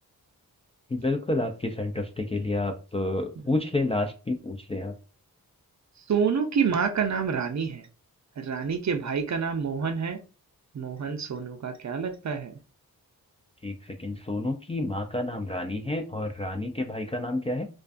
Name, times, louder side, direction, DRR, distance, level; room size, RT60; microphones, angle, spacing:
voice 1, 0.9-4.9 13.6-17.7, left 2 dB, 20° left, 3 dB, 0.3 m, -29 dB
voice 2, 6.1-7.9 8.4-10.2 10.7-12.5, right 6 dB, 50° right, 7 dB, 0.5 m, -28 dB
2.4 x 2.2 x 2.4 m, 0.34 s
cardioid pair, 50°, 37 cm